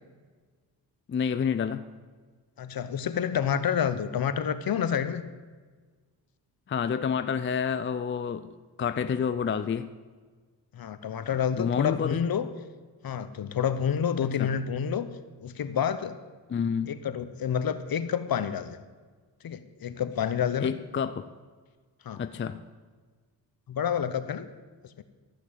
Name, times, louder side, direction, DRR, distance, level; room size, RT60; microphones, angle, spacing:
voice 1, 1.1-1.8 6.7-8.5 8.8-9.9 11.6-12.2 14.4-14.5 16.5-17.0 20.6-21.3 22.2-22.6, left 7 dB, 30° left, 11 dB, 0.5 m, -28 dB
voice 2, 2.6-5.2 10.7-12.5 13.0-15.1 15.4-16.2 16.9-18.8 19.4-20.7 22.0-22.2 23.7-24.5 25.0-25.1, left 8 dB, 55° left, 12 dB, 0.9 m, -28 dB
13.0 x 6.1 x 8.2 m, 1.4 s
cardioid pair, 80°, 43 cm